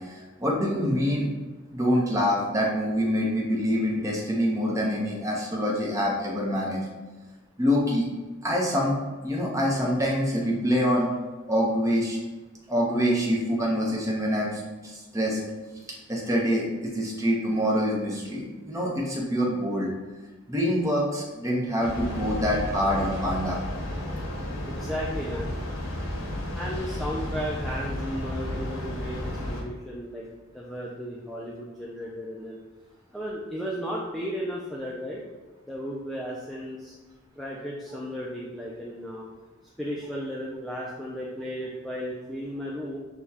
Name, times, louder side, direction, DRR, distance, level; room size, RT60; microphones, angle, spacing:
voice 1, 0.4-1.3 1.7-6.8 7.6-8.1 8.4-9.0 9.2-11.1 11.5-12.2 12.7-15.4 16.1-19.9 20.5-23.6, equal, 15° right, -3 dB, 0.8 m, -25 dB
Train, 21.8-29.6, left 1 dB, 85° left, 0.8 m, -32 dB
voice 2, 24.7-25.5 26.5-30.3 30.5-32.6 33.1-35.2 35.7-36.9 37.4-39.3 39.8-43.0, equal, ahead, -5 dB, 0.3 m, -34 dB
6.5 x 2.3 x 2.8 m, 1.2 s
head